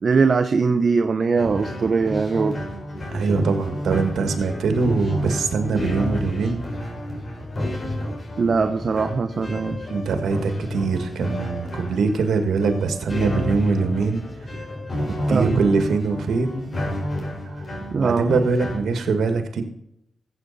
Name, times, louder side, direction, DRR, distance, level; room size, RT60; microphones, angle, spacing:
voice 1, 0.0-2.6 8.4-9.9 15.3-15.6 17.9-18.4, right 4 dB, 55° right, 8 dB, 0.8 m, -21 dB
sound 1, 1.3-18.8, left 1 dB, 50° left, 4.8 m, -30 dB
voice 2, 3.1-6.6 9.9-14.2 15.1-16.7 18.0-19.6, right 4 dB, 85° right, 7 dB, 1.7 m, -22 dB
14.5 x 8.1 x 4.1 m, 0.77 s
cardioid pair, 70°, 0 cm